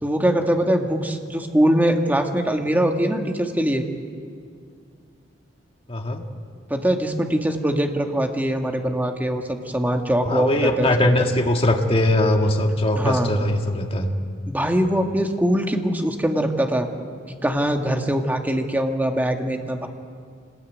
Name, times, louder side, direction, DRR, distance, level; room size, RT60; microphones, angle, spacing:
voice 1, 0.0-3.9 6.7-11.3 13.0-13.3 14.5-16.9 17.3-19.9, right 1 dB, 10° right, 3 dB, 1.8 m, -22 dB
voice 2, 5.9-6.2 10.3-14.1, left 1 dB, 30° left, 3 dB, 2.1 m, -21 dB
26.0 x 20.0 x 9.4 m, 2.2 s
head